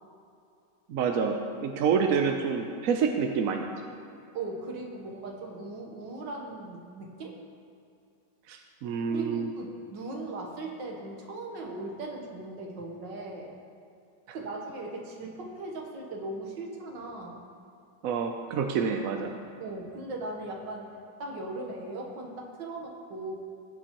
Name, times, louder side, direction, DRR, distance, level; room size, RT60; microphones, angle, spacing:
voice 1, 0.9-1.4 1.6-3.7 8.5-9.5 18.0-19.3, right 6 dB, 70° right, 4 dB, 0.9 m, -27 dB
voice 2, 4.3-7.3 9.1-13.5 14.3-17.4 19.6-23.3, right 2 dB, 85° right, 0 dB, 1.9 m, -38 dB
17.0 x 7.0 x 3.0 m, 2.5 s
omnidirectional pair, 1.9 m